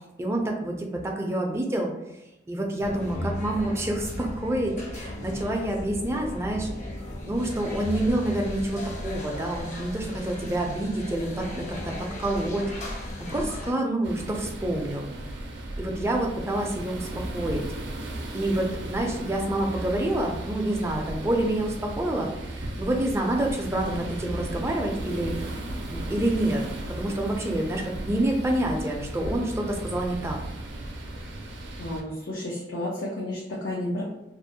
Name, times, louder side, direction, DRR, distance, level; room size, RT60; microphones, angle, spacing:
voice 1, 0.2-1.9 2.5-6.7 7.3-12.7 13.2-15.1 15.8-17.1 17.3-17.6 18.3-25.4 25.9-26.6 27.0-30.4, right 1 dB, 15° right, 0 dB, 0.4 m, -28 dB
sound 1, 2.8-13.7, left 1 dB, 40° left, 0.6 m, -36 dB
sound 2, 14.0-32.0, right 1 dB, 80° right, 0.4 m, -36 dB
voice 2, 31.8-34.0, left 1 dB, 85° left, -5 dB, 0.5 m, -31 dB
2.4 x 2.0 x 2.7 m, 0.93 s
head